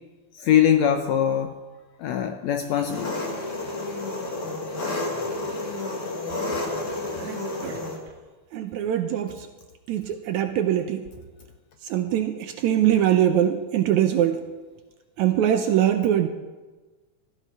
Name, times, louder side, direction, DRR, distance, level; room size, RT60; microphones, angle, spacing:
voice 1, 0.3-1.5 2.0-3.3, left 9 dB, 75° left, 6 dB, 1.7 m, -22 dB
Engine, 2.7-8.0, left 2 dB, 30° left, 1.6 m, -30 dB
voice 2, 7.2-7.8 8.5-9.3 9.9-11.0 11.9-14.4 15.2-16.3, right 10 dB, 75° right, 7 dB, 1.8 m, -22 dB
16.0 x 14.0 x 4.6 m, 1.3 s
omnidirectional pair, 3.9 m